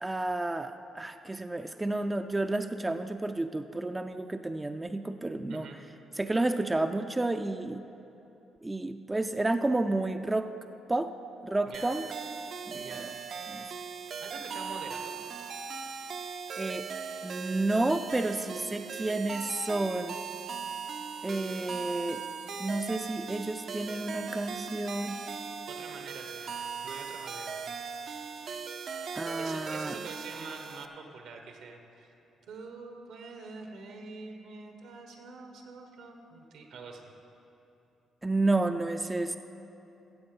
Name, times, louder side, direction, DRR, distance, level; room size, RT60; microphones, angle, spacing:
voice 1, 0.0-5.7 6.2-7.8 8.6-10.5 10.9-11.1 11.4-12.0 12.7-13.1 13.5-13.7 16.6-16.9 17.2-20.2 21.2-22.2 22.6-25.2 29.1-30.0 38.2-39.4, right 2 dB, 15° right, 8 dB, 0.4 m, -31 dB
sound 1, 11.7-30.9, right 6 dB, 60° right, 0.6 m, -39 dB
voice 2, 12.7-13.1 14.2-15.2 25.7-27.6 29.4-32.1 32.5-37.0, right 4 dB, 80° right, 4 dB, 1.4 m, -45 dB
15.0 x 7.8 x 5.4 m, 2.9 s
cardioid pair, 90°, 0 cm